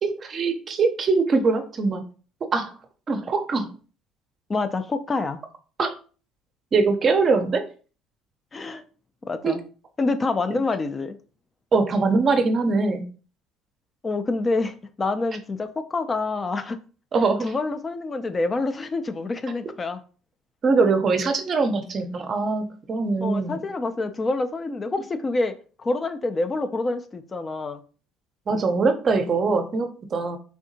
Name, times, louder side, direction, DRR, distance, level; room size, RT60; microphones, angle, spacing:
voice 1, 0.0-2.0 2.5-2.7 3.1-3.7 5.8-5.9 6.7-7.6 9.4-9.6 11.7-13.0 17.1-17.5 20.6-23.6 28.5-30.4, right 4 dB, 40° right, 0.5 m, -22 dB
voice 2, 4.5-5.4 8.5-8.8 9.2-9.6 10.0-11.2 14.0-16.8 17.4-20.0 23.2-25.5 25.8-27.8, left 3 dB, 25° left, 0.3 m, -27 dB
3.3 x 2.7 x 2.7 m
supercardioid pair, 95°, 0 cm